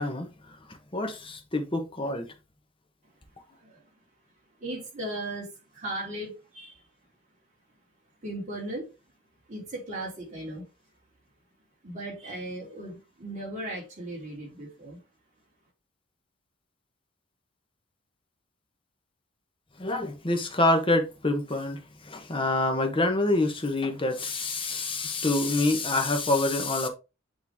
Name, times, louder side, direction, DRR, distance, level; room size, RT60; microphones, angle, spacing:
voice 1, 0.0-2.3 19.8-26.9, left 2 dB, 25° left, 1.0 m, -27 dB
voice 2, 3.5-3.8 4.6-6.8 8.2-8.9 9.5-10.6 11.8-15.0, right 1 dB, 35° right, 3.2 m, -37 dB
8.5 x 3.3 x 3.5 m
head